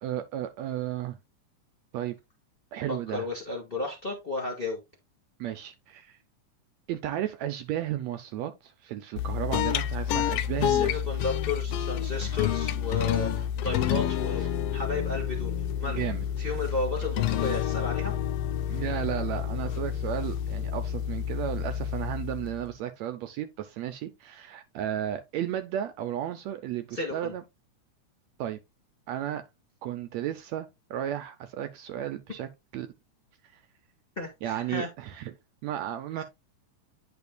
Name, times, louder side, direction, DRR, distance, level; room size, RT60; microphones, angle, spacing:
voice 1, 0.0-1.2 1.9-2.2 2.7-3.3 5.4-6.2 6.9-11.0 15.8-16.2 18.7-27.4 28.4-28.6 29.1-29.4 29.8-32.9 34.4-35.3 35.6-36.2, right 11 dB, 75° right, 1.8 m, -34 dB
voice 2, 2.9-4.8 9.6-9.7 10.6-15.5 15.8-16.1 16.4-18.1 26.9-27.3 34.2-34.9 36.2-36.3, left 3 dB, 25° left, 1.3 m, -33 dB
sound 1, 9.2-22.7, left 10 dB, 90° left, 1.3 m, -29 dB
9.6 x 5.2 x 2.2 m
omnidirectional pair, 3.4 m